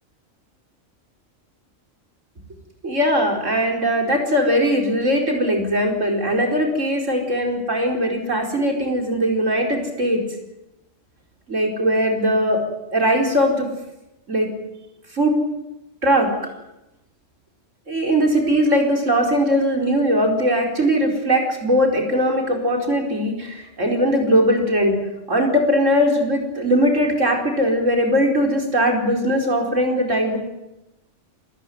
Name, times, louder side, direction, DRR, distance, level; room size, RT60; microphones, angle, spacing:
voice 1, 2.8-10.2 11.5-12.6 12.9-13.7 14.3-14.5 15.1-15.4 16.0-16.3 17.9-25.0 25.3-30.4, equal, 75° right, 1 dB, 5.1 m, -20 dB
27.0 x 16.0 x 9.5 m, 0.93 s
omnidirectional pair, 1.3 m